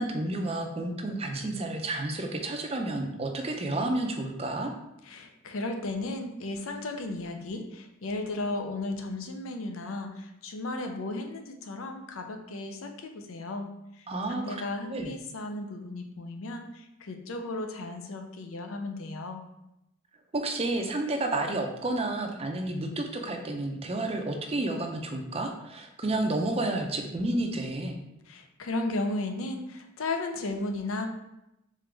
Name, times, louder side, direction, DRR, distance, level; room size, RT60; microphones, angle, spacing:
voice 1, 0.0-4.7 14.1-14.6 14.9-15.1 20.3-27.9, right 2 dB, 30° right, 3 dB, 0.5 m, -30 dB
voice 2, 5.0-13.7 14.3-19.4 28.3-31.1, left 2 dB, 75° left, 5 dB, 0.6 m, -35 dB
3.9 x 3.7 x 3.3 m, 0.87 s
head